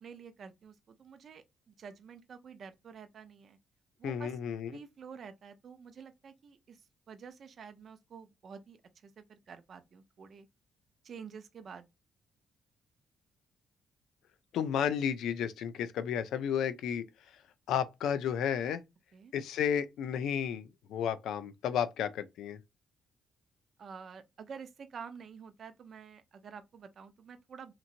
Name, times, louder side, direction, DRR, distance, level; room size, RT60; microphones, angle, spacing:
voice 1, 0.0-3.6 4.0-4.4 4.7-10.5 11.0-11.9 19.1-19.3 23.8-27.7, right 6 dB, 55° right, 0.4 m, -49 dB
voice 2, 4.0-4.7 14.5-17.1 17.7-18.8 19.3-22.6, left 8 dB, 80° left, 0.4 m, -32 dB
2.9 x 2.6 x 2.5 m
cardioid pair, 90°, 0 cm